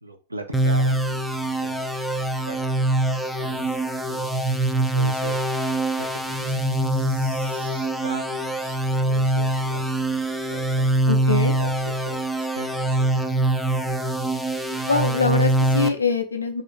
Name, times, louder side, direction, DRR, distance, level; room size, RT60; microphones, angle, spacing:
voice 1, 0.0-2.0 2.4-4.2 4.7-5.4 6.0-8.8 9.0-10.9 11.4-13.5, right 1 dB, 80° right, 6 dB, 0.5 m, -40 dB
sound 1, 0.5-15.9, right 1 dB, ahead, 0.4 m, -24 dB
Crying sobbing, 6.5-8.0 8.6-9.1 9.5-9.6 9.9-10.0 10.5-10.7 10.9-11.0, right 4 dB, 50° right, 1.2 m, -48 dB
voice 2, 11.1-11.6 14.7-16.6, left 4 dB, 80° left, 6 dB, 0.5 m, -24 dB
2.5 x 2.4 x 3.7 m, 0.34 s
figure-of-eight pair, 90°, 0 cm